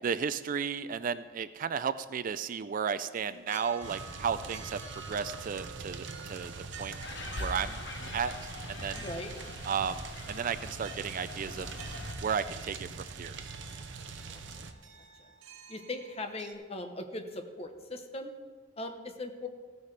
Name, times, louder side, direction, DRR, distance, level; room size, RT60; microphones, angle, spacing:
voice 1, 0.0-6.5 6.8-6.9 7.4-7.8 8.1-8.3 8.7-9.0 9.7-11.7 12.2-12.9 13.2-13.4, right 6 dB, 45° right, 14 dB, 0.4 m, -33 dB
sound 1, 3.0-16.5, right 4 dB, 85° right, 1.3 m, -50 dB
sound 2, 3.8-14.7, right 4 dB, 65° right, 0.8 m, -43 dB
sound 3, 7.0-12.1, left 2 dB, 65° left, 1.3 m, -42 dB
voice 2, 8.9-9.3 14.2-14.7 15.2-15.3 15.7-18.3 18.8-19.5, left 2 dB, 30° left, 6 dB, 1.0 m, -40 dB
16.0 x 9.5 x 3.3 m, 1.5 s
head